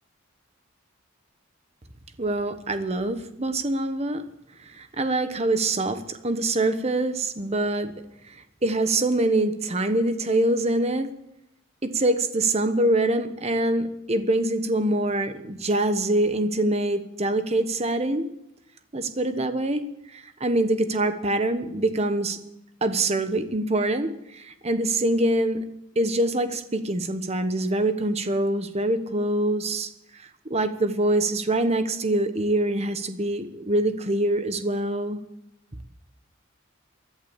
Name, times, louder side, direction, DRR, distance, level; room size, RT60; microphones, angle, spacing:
voice 1, 2.2-4.2 4.7-7.9 8.3-11.1 11.8-18.3 18.9-19.8 20.1-22.4 22.8-25.6 25.9-29.9 30.5-35.2, right 1 dB, 30° right, 9 dB, 1.1 m, -24 dB
16.0 x 11.0 x 7.1 m, 0.83 s
head